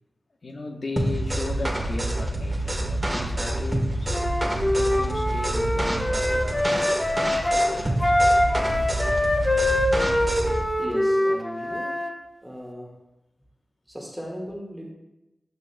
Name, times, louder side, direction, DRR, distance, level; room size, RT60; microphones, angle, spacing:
voice 1, 0.4-4.2 4.6-6.7 7.2-8.3, left 2 dB, 70° left, 4 dB, 0.9 m, -36 dB
sound 1, 1.0-10.6, right 1 dB, 30° right, 1.2 m, -27 dB
Wind instrument woodwind instrument, 4.1-12.1, left 1 dB, 25° left, 0.8 m, -24 dB
voice 2, 10.8-12.1 12.4-13.0 13.9-14.9, equal, 10° right, -1 dB, 1.6 m, -36 dB
13.0 x 5.1 x 2.2 m, 0.95 s
wide cardioid pair, 55°, 0 cm